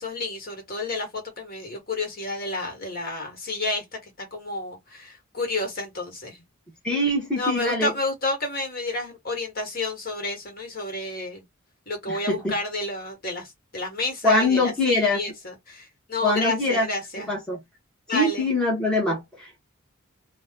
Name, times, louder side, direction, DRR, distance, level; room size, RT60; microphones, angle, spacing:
voice 1, 0.0-3.8 4.3-6.4 7.4-11.4 11.9-17.3 18.1-18.5, left 2 dB, 45° left, 1.5 m, -30 dB
voice 2, 6.8-7.9 12.1-12.6 14.2-15.2 16.2-16.9 17.3-17.6 18.1-19.6, left 2 dB, 5° left, 1.0 m, -23 dB
2.8 x 2.2 x 3.6 m
head